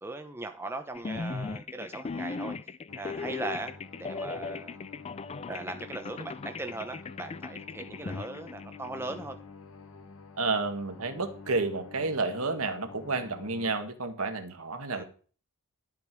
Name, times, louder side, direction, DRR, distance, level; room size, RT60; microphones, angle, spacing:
voice 1, 0.0-2.6 3.0-3.7 4.0-4.8 5.5-9.4 14.9-15.0, right 2 dB, 10° right, 6 dB, 0.9 m, -39 dB
sound 1, 0.9-9.3, left 4 dB, 30° left, 0.4 m, -38 dB
sound 2, 2.9-13.7, left 4 dB, 65° left, 1.6 m, -48 dB
voice 2, 10.4-15.0, right 3 dB, 75° right, 6 dB, 1.8 m, -31 dB
12.0 x 8.5 x 4.7 m, 0.41 s
head